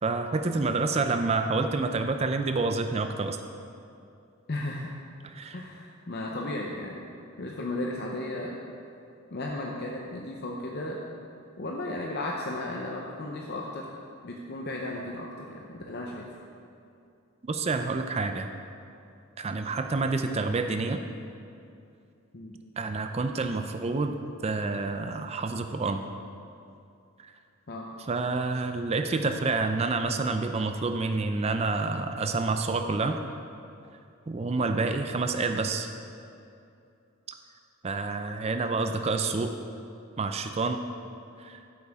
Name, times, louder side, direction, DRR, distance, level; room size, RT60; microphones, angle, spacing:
voice 1, 0.0-3.4 5.3-5.6 17.5-18.5 19.4-21.0 22.8-24.2 24.4-26.0 27.2-27.3 28.1-33.2 34.3-35.9 37.8-39.5 40.2-40.8 41.4-41.6, right 3 dB, 30° right, 7 dB, 0.4 m, -28 dB
voice 2, 4.5-4.9 5.5-7.1 7.4-8.6 9.3-11.0 11.6-13.9 14.2-16.3 22.3-22.6 27.7-27.9, left 1 dB, 45° left, -1 dB, 0.7 m, -35 dB
13.5 x 8.4 x 3.6 m, 2.6 s
head